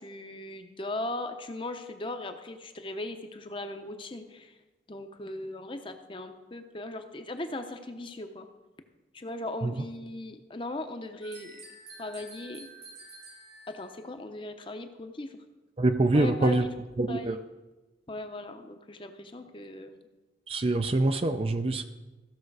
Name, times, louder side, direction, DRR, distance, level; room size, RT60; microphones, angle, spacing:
voice 1, 0.0-4.5 4.9-8.5 9.1-11.6 12.0-12.7 13.7-15.4 16.1-16.8 17.1-17.4 18.1-20.1, left 2 dB, 25° left, 7 dB, 0.7 m, -38 dB
sound 1, 11.2-14.1, right 3 dB, 70° right, 2.3 m, -49 dB
voice 2, 15.8-16.6 17.0-17.4 20.5-21.8, right 2 dB, 30° right, 8 dB, 0.4 m, -25 dB
15.0 x 6.8 x 4.7 m, 1.1 s
head